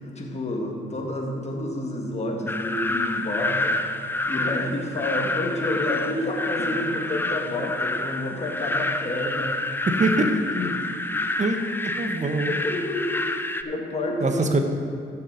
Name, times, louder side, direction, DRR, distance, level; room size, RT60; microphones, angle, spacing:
voice 1, 0.0-3.8 4.3-9.5 10.5-10.7 12.5-13.2 13.6-14.5, left 1 dB, 35° left, 0 dB, 1.8 m, -29 dB
sound 1, 2.5-13.6, left 2 dB, 10° left, 0.5 m, -28 dB
voice 2, 9.9-10.3 11.4-11.6 11.9-12.6 14.2-14.6, right 3 dB, 35° right, 5 dB, 1.1 m, -23 dB
14.5 x 6.8 x 4.0 m, 2.3 s
cardioid pair, 90°, 20 cm